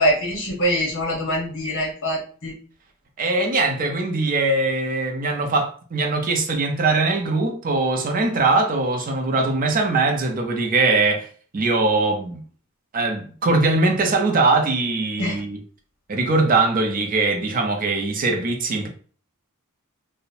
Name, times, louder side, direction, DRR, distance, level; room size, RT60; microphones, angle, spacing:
voice 1, 0.0-2.5 15.2-15.4, equal, 55° left, 1.0 m, -23 dB
voice 2, 3.2-11.3 11.5-12.4 12.9-15.6 16.1-18.9, right 3 dB, 40° right, 0.5 m, -21 dB
2.9 x 2.1 x 2.5 m
head